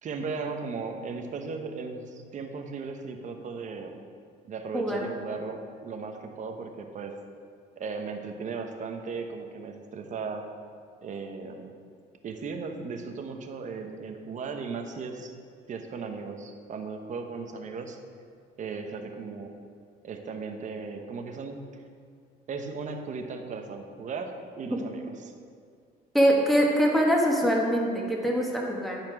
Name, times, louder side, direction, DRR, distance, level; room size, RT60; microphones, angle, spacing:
voice 1, 0.0-4.0 4.4-7.1 7.8-10.5 11.0-11.7 12.2-15.3 15.7-18.0 18.6-19.5 20.0-21.8 22.5-25.3, right 4 dB, 45° right, 5 dB, 0.9 m, -36 dB
voice 2, 26.1-29.0, equal, ahead, -2 dB, 1.5 m, -23 dB
10.5 x 4.4 x 5.9 m, 2.2 s
cardioid pair, 110°, 17 cm